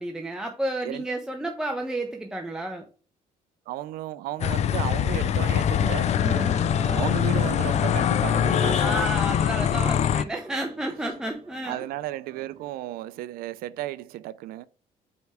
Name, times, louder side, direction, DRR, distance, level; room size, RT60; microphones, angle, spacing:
voice 1, 0.0-2.8 6.2-6.6 8.8-11.8, right 1 dB, 5° right, 0.8 m, -31 dB
voice 2, 3.7-6.2 6.9-8.9 11.6-14.7, right 14 dB, 85° right, 0.4 m, -34 dB
sound 1, 4.4-10.2, left 9 dB, 50° left, 0.4 m, -23 dB
sound 2, 5.4-12.8, right 6 dB, 40° right, 1.2 m, -41 dB
5.2 x 4.6 x 4.8 m
cardioid pair, 105°, 15 cm